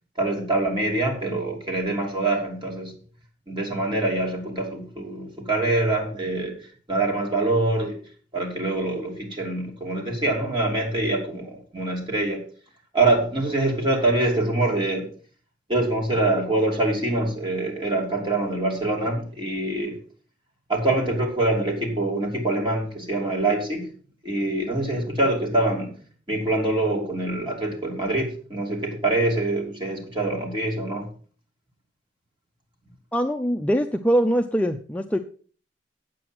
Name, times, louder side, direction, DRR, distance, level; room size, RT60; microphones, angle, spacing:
voice 1, 0.2-2.9 3.5-6.6 6.9-8.0 8.3-12.4 12.9-15.1 15.7-20.0 20.7-23.9 24.2-25.9 26.3-31.1, right 2 dB, 25° right, 0 dB, 2.9 m, -24 dB
voice 2, 33.1-35.2, equal, 10° left, 4 dB, 0.4 m, -22 dB
8.5 x 7.7 x 6.0 m, 0.42 s
head